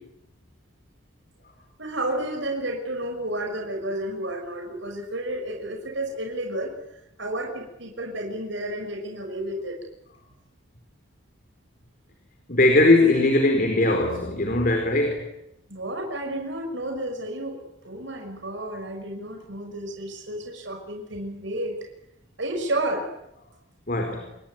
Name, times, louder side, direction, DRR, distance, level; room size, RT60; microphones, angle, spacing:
voice 1, 1.8-6.7 7.2-9.8 15.7-17.6 17.8-21.8 22.4-23.1, right 1 dB, 70° right, 3 dB, 5.8 m, -31 dB
voice 2, 12.5-15.3 23.9-24.3, left 2 dB, 45° left, 4 dB, 4.4 m, -20 dB
28.5 x 21.5 x 9.5 m, 0.85 s
head